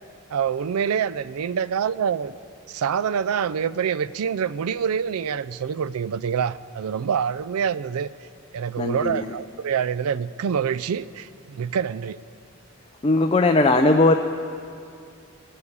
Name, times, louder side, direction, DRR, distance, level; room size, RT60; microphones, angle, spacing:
voice 1, 0.3-2.3 2.7-8.1 8.5-12.2, right 7 dB, 85° right, 18 dB, 0.4 m, -26 dB
voice 2, 8.8-9.3 13.0-14.1, left 2 dB, 25° left, 4 dB, 0.4 m, -18 dB
20.0 x 6.7 x 8.5 m, 2.4 s
head